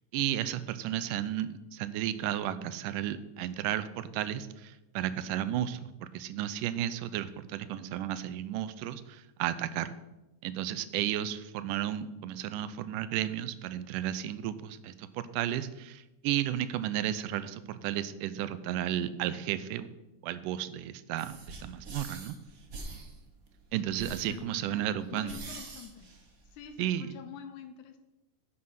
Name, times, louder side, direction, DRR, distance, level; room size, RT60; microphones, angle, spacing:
voice 1, 0.1-9.9 10.4-19.9 20.2-22.4 23.7-25.4 26.8-27.1, right 11 dB, 85° right, 14 dB, 2.1 m, -33 dB
sound 1, 21.2-26.8, right 2 dB, 60° right, 0.8 m, -45 dB
voice 2, 24.3-26.1 26.5-28.0, left 7 dB, 75° left, 8 dB, 2.0 m, -47 dB
9.9 x 7.6 x 5.7 m, 0.99 s
omnidirectional pair, 3.8 m